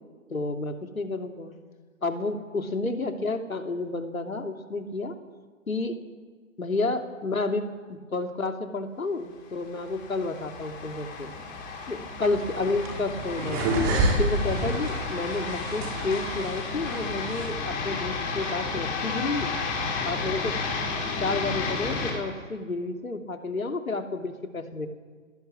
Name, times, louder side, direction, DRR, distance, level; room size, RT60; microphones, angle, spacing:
voice 1, 0.3-1.5 2.0-5.1 5.7-6.0 6.6-11.3 11.9-13.7 14.2-19.5 20.0-20.5 21.2-24.9, left 3 dB, 90° left, 5 dB, 2.9 m, -30 dB
sound 1, 9.6-22.1, left 4 dB, 20° left, 4.9 m, -32 dB
sound 2, 12.2-17.5, right 1 dB, 25° right, 5.5 m, -29 dB
20.5 x 18.5 x 9.7 m, 1.5 s
hypercardioid pair, 145°, 40 cm